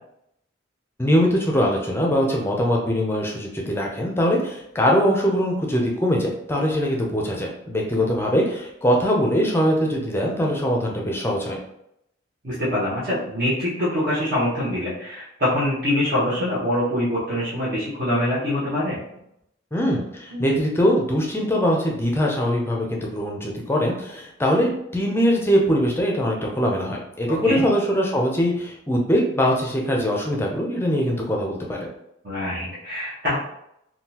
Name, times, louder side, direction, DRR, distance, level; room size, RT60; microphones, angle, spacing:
voice 1, 1.0-11.6 19.7-31.9, equal, 10° left, -1 dB, 0.5 m, -22 dB
voice 2, 12.4-19.0 20.3-20.4 27.3-27.6 32.2-33.4, left 1 dB, 50° right, -9 dB, 1.1 m, -24 dB
3.7 x 2.3 x 2.8 m, 0.78 s
head